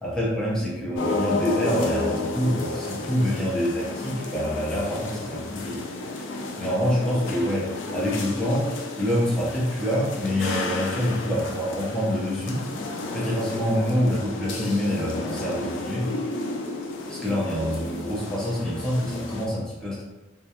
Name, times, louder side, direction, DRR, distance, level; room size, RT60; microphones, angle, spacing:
voice 1, 0.0-5.8 6.6-8.7 9.0-12.6 13.1-16.1 17.1-20.0, equal, 5° left, -6 dB, 0.5 m, -26 dB
sound 1, 0.9-19.5, left 2 dB, 90° left, 0.4 m, -32 dB
2.3 x 2.1 x 2.8 m, 1.1 s
head